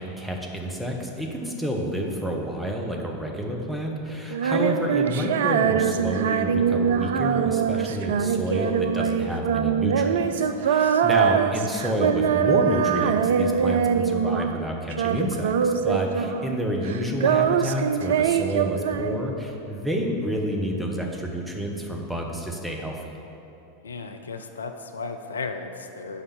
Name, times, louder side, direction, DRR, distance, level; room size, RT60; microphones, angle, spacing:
voice 1, 0.0-23.1, equal, 5° right, 0 dB, 1.2 m, -29 dB
Female singing, 4.3-14.6 14.9-16.6 16.8-19.5, right 7 dB, 60° right, 0.3 m, -23 dB
voice 2, 4.4-4.7 10.6-11.3 23.8-26.2, left 4 dB, 75° left, 6 dB, 0.5 m, -36 dB
sound 1, 4.5-10.6, equal, 90° right, 1.1 m, -37 dB
7.0 x 5.4 x 7.1 m, 2.9 s
figure-of-eight pair, 85°, 0 cm